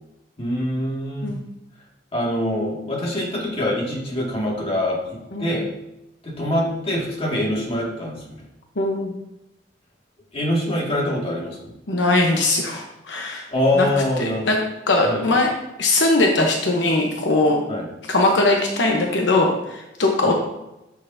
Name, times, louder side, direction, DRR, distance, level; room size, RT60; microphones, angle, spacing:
voice 1, 0.4-1.3 2.1-5.7 6.2-8.4 10.3-11.7 13.5-14.5 15.0-15.4 17.7-17.9 20.2-20.3, left 1 dB, 35° left, -3 dB, 2.1 m, -24 dB
voice 2, 8.8-9.2 11.9-13.5 13.8-13.9 14.2-14.6 14.9-15.5 15.8-17.6 18.1-20.3, left 2 dB, 80° left, 1 dB, 1.0 m, -20 dB
9.7 x 6.6 x 2.7 m, 0.93 s
head